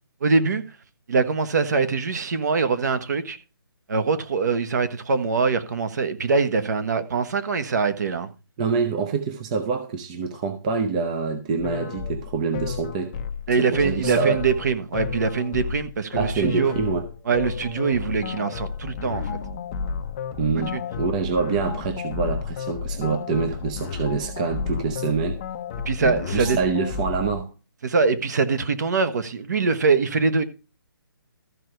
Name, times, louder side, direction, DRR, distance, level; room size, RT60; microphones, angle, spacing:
voice 1, 0.2-0.6 1.1-3.4 3.9-8.3 13.5-16.7 17.3-19.4 20.5-20.8 25.8-26.6 27.8-30.4, right 4 dB, 50° right, 1.3 m, -23 dB
voice 2, 8.6-13.1 13.6-14.4 16.1-17.1 20.4-25.4 26.0-27.5, right 5 dB, 20° right, 0.6 m, -26 dB
sound 1, 11.6-27.4, left 6 dB, 20° left, 0.6 m, -32 dB
13.5 x 4.7 x 6.6 m
hypercardioid pair, 170°, 12 cm